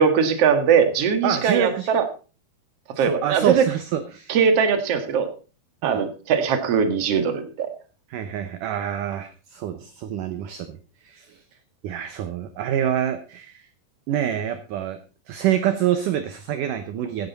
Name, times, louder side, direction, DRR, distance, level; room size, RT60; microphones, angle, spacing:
voice 1, 0.0-2.0 3.0-3.6 4.3-5.3 5.8-7.7, right 6 dB, 50° right, 8 dB, 2.1 m, -20 dB
voice 2, 1.2-1.9 3.0-4.4 5.8-6.0 8.1-10.8 11.0-11.4 11.8-13.7 14.1-15.0 15.3-17.3, right 10 dB, 75° right, 9 dB, 2.0 m, -26 dB
16.0 x 10.5 x 4.1 m, 0.35 s
omnidirectional pair, 4.8 m